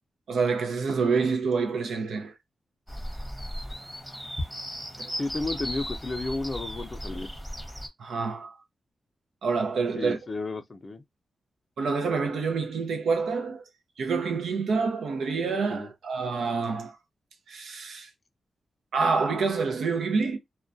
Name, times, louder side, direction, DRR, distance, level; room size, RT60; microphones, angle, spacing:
voice 1, 0.3-2.3 5.0-5.1 8.0-8.6 9.4-10.2 11.8-13.6 14.0-17.0 17.5-18.1 18.9-20.4, right 4 dB, 85° right, 0.6 m, -27 dB
sound 1, 2.9-7.9, equal, 5° right, 0.9 m, -36 dB
voice 2, 5.2-7.3 10.0-11.0 15.7-15.9, left 2 dB, 40° left, 0.4 m, -32 dB
2.3 x 2.1 x 2.5 m
cardioid pair, 80°, 0 cm